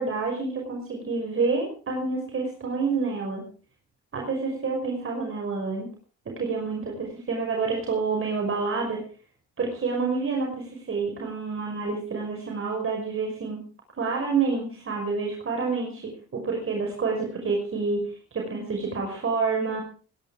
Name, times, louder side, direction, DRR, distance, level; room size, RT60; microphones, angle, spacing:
voice 1, 0.0-3.5 4.1-5.9 6.3-9.0 9.6-13.6 14.0-19.8, right 4 dB, 45° right, 1 dB, 5.5 m, -28 dB
21.0 x 11.0 x 4.9 m, 0.39 s
cardioid pair, 90°, 30 cm